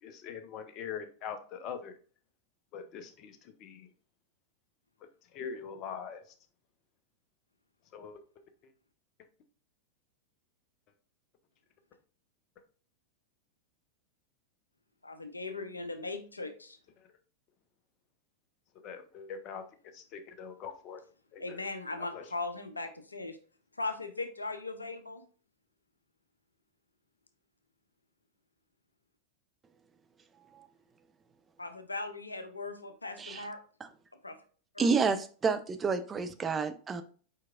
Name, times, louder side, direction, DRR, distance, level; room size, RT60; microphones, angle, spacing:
voice 1, 0.0-2.0 2.7-3.9 5.3-6.3 7.9-8.2 8.6-8.7 17.0-17.1 18.8-19.6 19.9-21.0 21.3-21.6 22.1-22.3, left 7 dB, 35° left, 8 dB, 0.7 m, -43 dB
voice 2, 15.0-16.8 21.4-23.4 23.8-25.2 31.6-33.6 34.2-34.4 34.7-34.9, left 3 dB, 80° left, 9 dB, 0.5 m, -38 dB
voice 3, 34.8-37.0, right 5 dB, 20° right, 9 dB, 0.4 m, -29 dB
4.6 x 4.5 x 2.4 m, 0.41 s
figure-of-eight pair, 90°, 0 cm